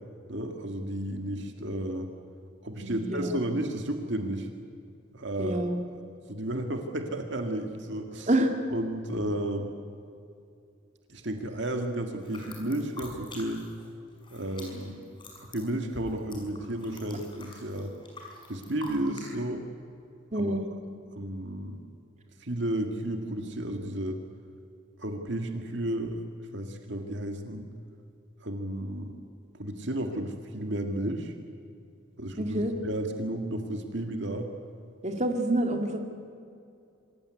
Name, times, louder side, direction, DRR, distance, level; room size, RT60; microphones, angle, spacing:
voice 1, 0.3-2.1 2.6-4.5 5.1-5.6 6.3-8.3 8.7-9.7 11.1-13.6 14.3-15.0 15.5-17.9 18.5-19.6 20.3-20.6 21.1-21.8 22.4-24.2 25.0-26.2 26.5-27.7 28.4-29.1 29.6-31.3 32.2-34.5, right 1 dB, 60° right, 5 dB, 2.0 m, -32 dB
voice 2, 2.8-3.4 5.4-5.8 8.3-8.5 20.3-20.7 32.4-32.7 35.0-36.0, right 1 dB, 35° right, 4 dB, 2.2 m, -27 dB
sound 1, 12.2-13.9 14.1-19.3, left 2 dB, 25° left, 5.9 m, -46 dB
26.5 x 16.0 x 9.6 m, 2.5 s
head